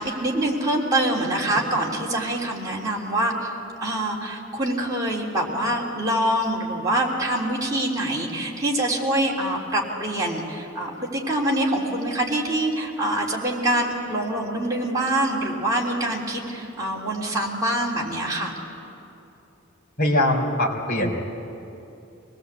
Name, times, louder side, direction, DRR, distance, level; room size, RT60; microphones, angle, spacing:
voice 1, 0.0-3.5 3.8-18.5, right 1 dB, 15° right, -4 dB, 3.3 m, -25 dB
voice 2, 20.0-21.2, left 1 dB, 50° left, -1 dB, 3.5 m, -22 dB
24.0 x 19.5 x 8.1 m, 2.9 s
head